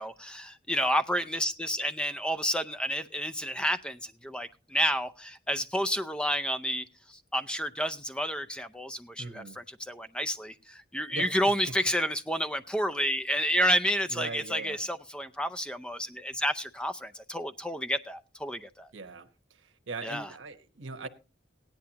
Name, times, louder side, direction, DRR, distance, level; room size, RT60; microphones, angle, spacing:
voice 1, 0.0-18.9 20.0-20.3, equal, 5° left, 0.5 m, -30 dB
voice 2, 9.2-9.6 11.1-11.3 14.1-14.8 18.9-21.1, right 3 dB, 85° right, 1.1 m, -40 dB
17.0 x 10.5 x 2.9 m
head